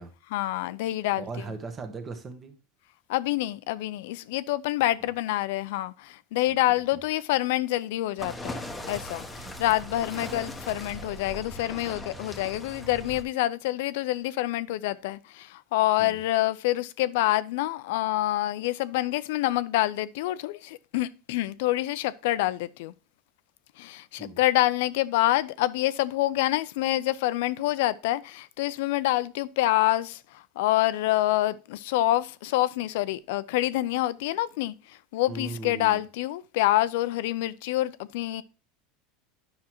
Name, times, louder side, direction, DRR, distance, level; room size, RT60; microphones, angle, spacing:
voice 1, 0.3-1.3 3.1-22.9 23.8-38.4, left 16 dB, 75° left, 0.5 m, -27 dB
voice 2, 1.2-2.6 6.7-6.8 9.4-9.5 16.0-16.2 24.2-24.4 35.3-36.0, right 3 dB, 25° right, 1.1 m, -38 dB
sound 1, 8.2-13.2, left 1 dB, 5° left, 1.0 m, -39 dB
9.7 x 6.0 x 2.9 m
supercardioid pair, 145°, 0 cm